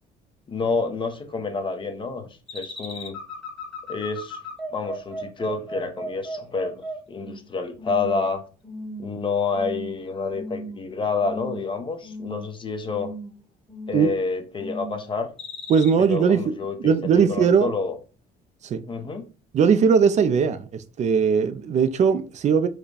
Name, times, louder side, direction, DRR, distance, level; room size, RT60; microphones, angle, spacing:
voice 1, 0.5-3.2 3.9-4.4 4.7-8.4 9.0-13.1 13.9-15.3 16.0-18.0 18.8-19.3, left 4 dB, 30° left, 0.9 m, -28 dB
sound 1, 2.5-7.5 7.8-8.3 8.6-9.2 9.5-9.9 10.3-10.9 11.2-11.7 12.0-12.5 12.9-13.3 13.7-14.2 14.6-15.0 15.4-15.9, equal, 5° left, 1.3 m, -36 dB
voice 2, 15.7-17.7 18.6-18.8 19.5-22.7, right 6 dB, 45° right, 0.5 m, -20 dB
4.8 x 2.3 x 4.7 m
cardioid pair, 110°, 17 cm